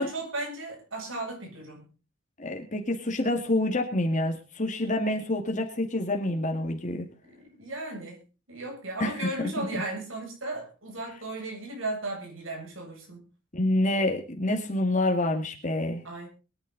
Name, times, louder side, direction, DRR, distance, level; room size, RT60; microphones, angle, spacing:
voice 1, 0.0-1.9 7.3-8.2 8.5-13.2 16.0-16.3, right 2 dB, 80° right, 1 dB, 7.5 m, -36 dB
voice 2, 2.4-7.0 9.0-9.3 9.6-9.7 13.5-16.3, left 1 dB, 40° left, 2 dB, 2.1 m, -27 dB
23.0 x 10.5 x 4.0 m, 0.34 s
head